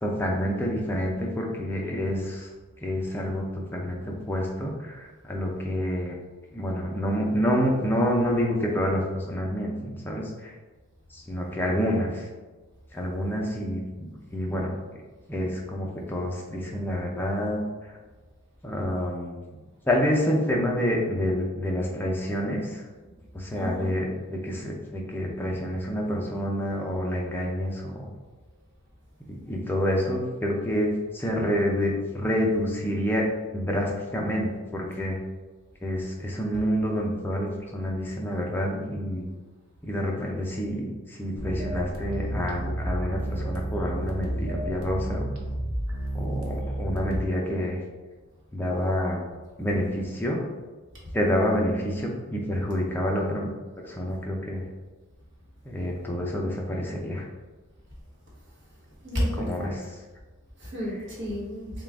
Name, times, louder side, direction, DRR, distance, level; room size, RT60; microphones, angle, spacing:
voice 1, 0.0-2.5 2.8-3.4 3.7-6.1 6.5-10.5 11.1-12.2 12.9-14.7 15.3-17.6 18.6-19.4 19.9-22.8 23.3-28.1 29.3-33.3 33.5-35.2 35.8-39.3 39.8-45.3 46.1-47.8 48.5-49.3 49.6-50.4 51.1-53.5 53.9-54.6 55.7-57.3 59.4-59.9, equal, 10° left, -2 dB, 0.4 m, -28 dB
voice 2, 23.5-23.9 59.0-59.8 60.6-61.7, equal, 55° right, -6 dB, 1.2 m, -31 dB
sound 1, 41.4-47.2, right 1 dB, 75° right, 0.7 m, -31 dB
3.6 x 2.4 x 3.5 m, 1.3 s
head